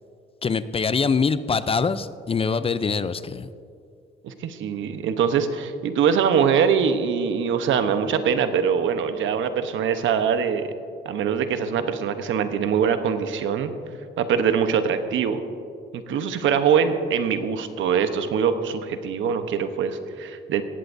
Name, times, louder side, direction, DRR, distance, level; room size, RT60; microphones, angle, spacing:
voice 1, 0.4-3.5, left 5 dB, 30° left, 13 dB, 0.5 m, -24 dB
voice 2, 4.2-10.7 11.0-13.7 14.2-15.4 15.9-20.6, right 7 dB, 75° right, 8 dB, 1.0 m, -23 dB
18.5 x 15.0 x 2.7 m, 2.4 s
cardioid pair, 90°, 20 cm